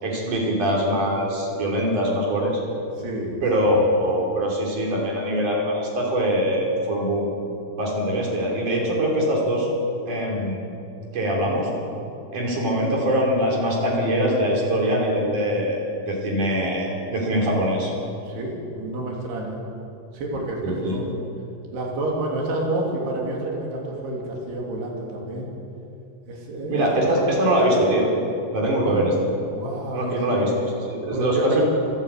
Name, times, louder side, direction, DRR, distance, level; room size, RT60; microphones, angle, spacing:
voice 1, 0.0-2.6 3.4-7.4 7.8-9.7 10.1-10.6 11.1-11.7 12.3-17.9 20.6-21.1 26.7-28.1 28.5-29.2 29.9-31.6, equal, 55° right, -2 dB, 4.8 m, -23 dB
voice 2, 3.0-3.4 18.3-19.6 20.1-21.2 21.7-25.5 26.3-27.1 28.8-29.0 29.5-30.1 31.1-31.6, right 2 dB, 85° right, -2 dB, 5.1 m, -29 dB
25.5 x 12.5 x 8.4 m, 2.7 s
omnidirectional pair, 4.5 m